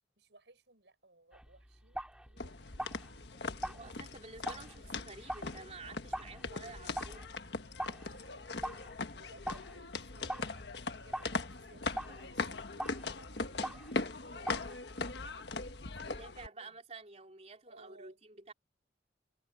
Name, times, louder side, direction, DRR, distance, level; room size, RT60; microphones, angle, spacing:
voice 1, 0.2-4.2 8.0-8.8 9.1-10.5 10.8-15.2 15.5-16.8 17.7-18.2, right 2 dB, 80° right, 6.3 m, -62 dB
sound 1, 1.3-15.1, right 1 dB, 5° right, 2.3 m, -45 dB
sound 2, 2.4-16.5, left 3 dB, 70° left, 1.4 m, -40 dB
voice 2, 3.6-7.2 13.4-13.6 15.9-18.5, right 3 dB, 40° right, 3.6 m, -51 dB
head